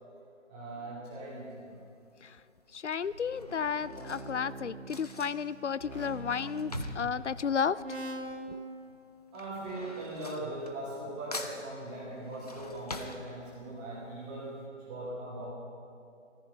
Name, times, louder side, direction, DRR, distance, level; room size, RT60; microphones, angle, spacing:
voice 1, 0.5-1.7 6.7-6.8 7.2-7.4 9.3-14.5 14.8-15.4, right 1 dB, 5° right, -7 dB, 1.3 m, -40 dB
Drawer open or close / Cutlery silverware, 1.3-1.7 2.5-8.4 8.7-11.1 11.3-13.8 14.3-14.4 14.6-14.7, left 2 dB, 30° left, 0.8 m, -46 dB
voice 2, 2.7-7.8 8.5-8.6, left 6 dB, 65° left, 17 dB, 0.5 m, -32 dB
sound 1, 3.0-7.4 7.8-8.5, right 1 dB, 90° right, 2.4 m, -44 dB
16.0 x 14.0 x 5.3 m, 2.5 s
figure-of-eight pair, 160°, 37 cm